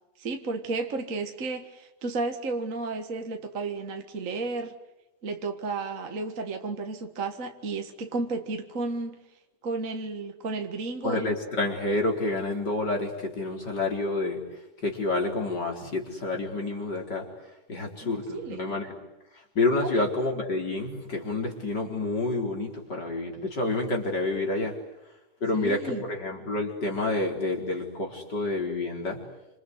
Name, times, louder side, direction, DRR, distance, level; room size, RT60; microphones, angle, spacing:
voice 1, 0.2-4.7 5.2-9.2 9.6-11.3 18.0-18.6 19.8-20.1 25.5-26.0, right 3 dB, 35° right, 1.3 m, -33 dB
voice 2, 11.0-14.4 14.8-17.3 17.7-18.9 19.5-24.7 25.4-29.2, left 2 dB, 30° left, 4.8 m, -28 dB
28.0 x 26.5 x 8.1 m
omnidirectional pair, 3.7 m